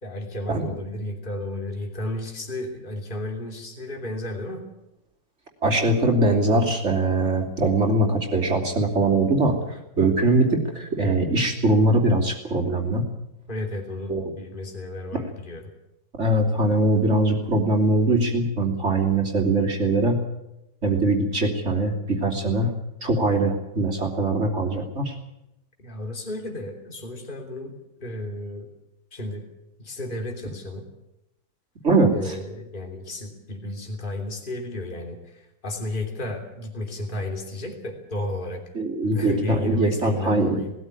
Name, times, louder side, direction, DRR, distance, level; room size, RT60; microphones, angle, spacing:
voice 1, 0.0-4.7 13.5-15.7 25.8-28.7 29.1-29.4 29.8-30.9 32.1-38.6 39.0-40.7, left 1 dB, 25° left, 2 dB, 3.2 m, -33 dB
voice 2, 5.6-13.0 14.1-14.3 16.2-20.2 20.8-22.7 23.0-25.2 31.8-32.4 38.7-40.6, right 2 dB, 35° right, 0 dB, 3.2 m, -22 dB
19.5 x 14.5 x 9.7 m, 0.88 s
omnidirectional pair, 2.2 m